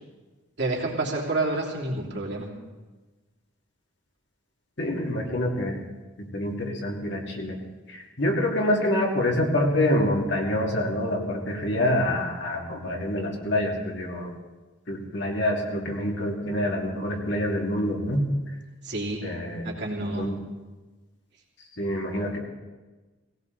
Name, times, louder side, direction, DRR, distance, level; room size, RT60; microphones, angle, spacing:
voice 1, 0.6-2.5 18.9-19.2 19.6-20.3, right 2 dB, 55° right, -2 dB, 3.0 m, -28 dB
voice 2, 4.8-5.8 6.2-7.6 7.9-14.3 14.9-18.3 19.2-19.6 20.2-20.4 21.8-22.4, left 1 dB, 60° left, 0 dB, 2.5 m, -26 dB
18.0 x 17.5 x 4.0 m, 1.2 s
head